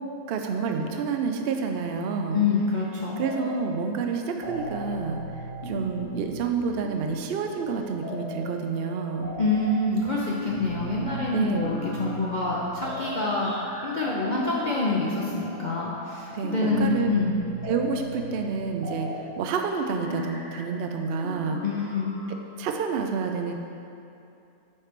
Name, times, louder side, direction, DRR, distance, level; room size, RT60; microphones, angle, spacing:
voice 1, 0.3-2.4 3.2-5.2 5.7-9.3 11.3-11.7 16.3-17.1 17.7-21.6 22.6-23.5, right 5 dB, 75° right, 4 dB, 0.5 m, -28 dB
voice 2, 2.3-3.2 9.4-13.5 13.8-17.4 21.6-22.1, left 3 dB, 50° left, -5 dB, 0.5 m, -26 dB
sound 1, 3.2-3.8 4.1-22.4, equal, 20° left, 0.9 m, -38 dB
8.6 x 3.2 x 5.0 m, 2.6 s
omnidirectional pair, 1.5 m